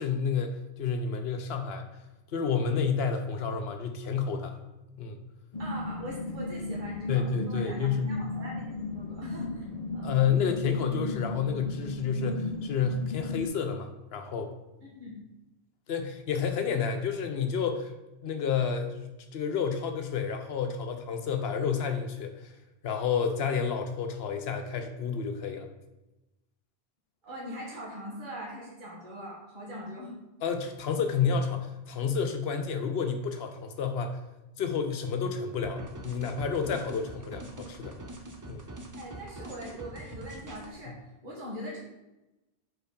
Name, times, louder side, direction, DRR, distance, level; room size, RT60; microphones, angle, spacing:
voice 1, 0.0-1.9 2.3-4.6 5.0-5.2 7.1-8.1 10.0-14.5 15.9-17.9 18.2-22.5 22.8-25.7 30.4-34.2 34.6-37.9 38.5-38.7, left 6 dB, 70° left, 6 dB, 0.9 m, -30 dB
sound 1, 5.5-13.5, left 2 dB, 40° left, 0.7 m, -36 dB
voice 2, 5.6-9.6 9.9-10.1 14.8-15.2 27.2-30.2 39.0-41.0 41.2-41.8, equal, 45° right, -4 dB, 1.6 m, -41 dB
sound 2, 35.6-40.7, right 2 dB, 25° right, 0.5 m, -44 dB
4.7 x 4.0 x 5.2 m, 0.98 s
omnidirectional pair, 1.1 m